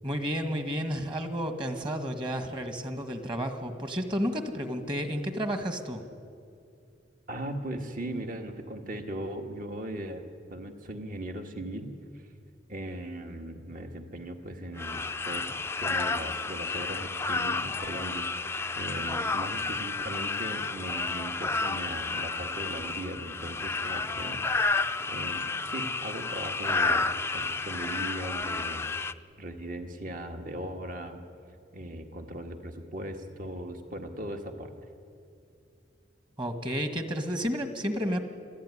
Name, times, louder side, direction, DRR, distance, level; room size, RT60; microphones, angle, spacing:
voice 1, 0.0-6.0 36.4-38.3, equal, 25° right, 7 dB, 1.8 m, -31 dB
voice 2, 7.3-10.2 10.5-12.3 12.7-28.9 29.4-31.2 31.7-34.7, right 1 dB, 50° right, 5 dB, 1.8 m, -38 dB
sound 1, 14.8-29.1, left 3 dB, 15° left, 0.5 m, -31 dB
26.5 x 15.5 x 9.9 m, 2.5 s
head